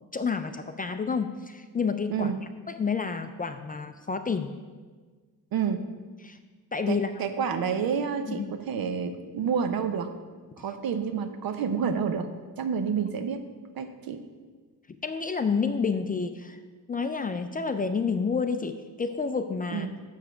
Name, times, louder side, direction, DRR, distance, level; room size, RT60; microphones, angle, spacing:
voice 1, 0.1-2.3 2.8-4.5 6.2-6.4 6.7-7.1 8.3-8.5 15.0-16.6 16.9-19.9, left 5 dB, 25° left, 8 dB, 0.3 m, -29 dB
voice 2, 5.5-5.8 6.9-10.1 10.6-12.3 12.6-13.4 13.8-14.2 19.7-19.9, right 6 dB, 70° right, 8 dB, 0.7 m, -29 dB
6.2 x 4.9 x 6.6 m, 1.4 s
cardioid pair, 95°, 37 cm